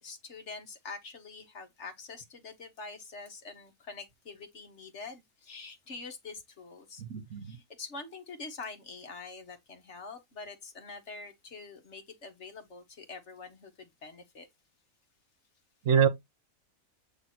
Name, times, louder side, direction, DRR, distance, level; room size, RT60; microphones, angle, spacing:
voice 1, 0.0-7.0 7.4-14.5, left 4 dB, 55° left, 1.5 m, -45 dB
voice 2, 7.0-7.6 15.8-16.1, right 7 dB, 65° right, 1.2 m, -25 dB
7.9 x 3.3 x 4.3 m
omnidirectional pair, 1.5 m